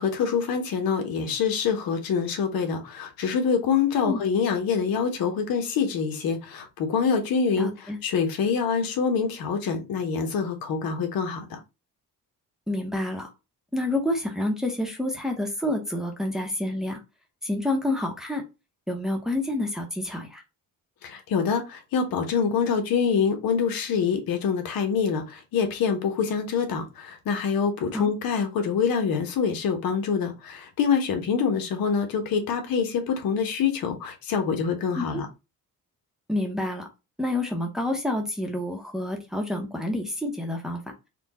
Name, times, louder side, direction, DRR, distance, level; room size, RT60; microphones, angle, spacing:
voice 1, 0.0-11.6 21.0-35.3, left 6 dB, 80° left, 1.2 m, -25 dB
voice 2, 7.6-8.0 12.7-13.3 13.7-17.0 17.4-18.4 18.9-20.4 27.9-28.1 35.0-35.2 36.3-36.9 37.2-40.8, left 1 dB, ahead, 0.8 m, -28 dB
4.4 x 2.3 x 4.1 m
cardioid pair, 165°, 34 cm